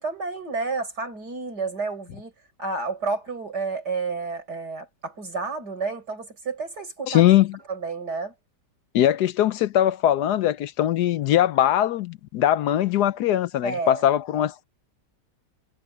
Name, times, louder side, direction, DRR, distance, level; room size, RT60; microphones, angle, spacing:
voice 1, 0.0-2.3 2.6-7.2 7.7-8.3 13.6-14.0, right 4 dB, 70° right, 6.6 m, -30 dB
voice 2, 7.1-7.6 8.9-14.6, left 12 dB, 75° left, 1.2 m, -21 dB
omnidirectional pair, 1.8 m